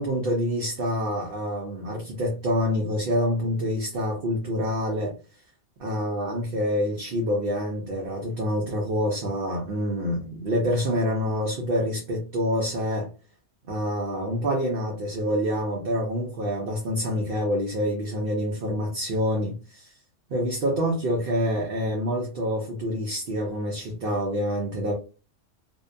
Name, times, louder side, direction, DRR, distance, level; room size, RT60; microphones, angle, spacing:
voice 1, 0.0-5.1 5.8-13.1 13.7-19.9 20.3-24.9, equal, 55° right, 0.7 m, -27 dB
2.6 x 2.1 x 2.5 m
omnidirectional pair, 1.3 m